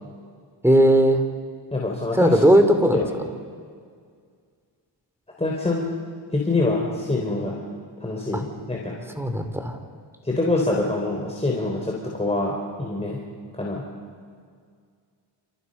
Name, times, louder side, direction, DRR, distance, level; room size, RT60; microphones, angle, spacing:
voice 1, 0.6-1.2 2.2-3.0 9.2-9.7, right 1 dB, 5° right, 7 dB, 2.9 m, -17 dB
voice 2, 1.7-2.4 2.9-3.1 5.4-5.9 6.3-7.6 8.0-9.0 10.2-13.2 13.5-13.8, left 2 dB, 15° left, -2 dB, 4.0 m, -25 dB
29.5 x 28.0 x 5.5 m, 2.1 s
cardioid pair, 95°, 46 cm